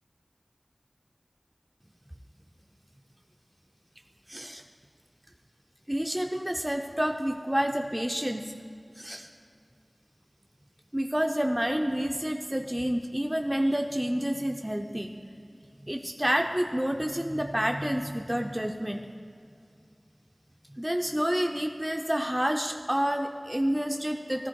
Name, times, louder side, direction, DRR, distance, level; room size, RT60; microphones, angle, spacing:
voice 1, 4.3-4.6 5.9-8.5 9.0-9.3 10.9-15.1 15.8-19.0 20.7-24.5, equal, 15° right, 4 dB, 0.5 m, -29 dB
16.0 x 13.5 x 2.3 m, 2.3 s
wide cardioid pair, 50°, 0 cm